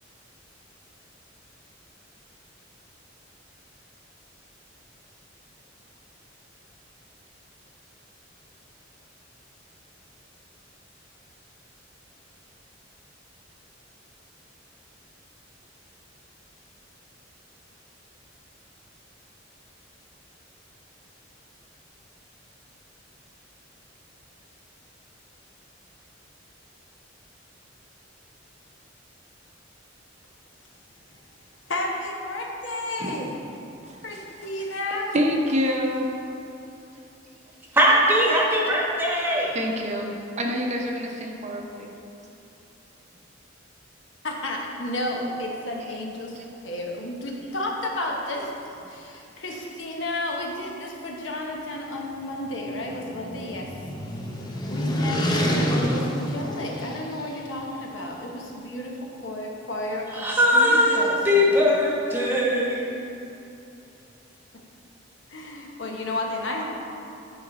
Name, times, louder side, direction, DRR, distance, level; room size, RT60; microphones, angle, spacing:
voice 1, 31.7-33.3 34.0-35.1 44.2-46.4 46.6-48.5 48.9-53.7 54.7-61.2 65.3-66.6, left 1 dB, 70° left, -1 dB, 1.1 m, -32 dB
voice 2, 34.1-34.7 35.1-36.1 39.5-41.9 46.4-46.5, equal, 35° right, 1 dB, 0.7 m, -27 dB
voice 3, 37.7-39.6 60.1-62.9, equal, 10° right, -3 dB, 1.1 m, -20 dB
sound 1, 52.5-57.3, equal, 20° left, 0.6 m, -27 dB
9.8 x 5.0 x 3.9 m, 2.9 s
head